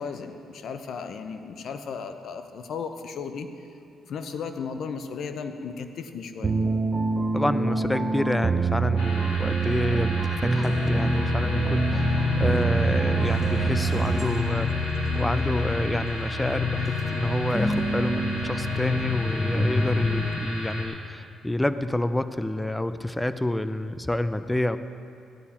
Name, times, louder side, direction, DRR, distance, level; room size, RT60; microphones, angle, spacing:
voice 1, 0.0-3.5 4.0-6.5, left 5 dB, 65° left, 7 dB, 0.9 m, -35 dB
sound 1, 6.4-14.5, right 5 dB, 35° right, 0.8 m, -26 dB
voice 2, 7.3-24.8, left 1 dB, 10° left, 12 dB, 0.5 m, -28 dB
sound 2, 9.0-20.8, left 1 dB, 85° left, 2.5 m, -34 dB
sound 3, 10.5-20.3, left 3 dB, 25° left, 2.4 m, -28 dB
15.5 x 10.5 x 4.4 m, 2.4 s
cardioid pair, 90°, 0 cm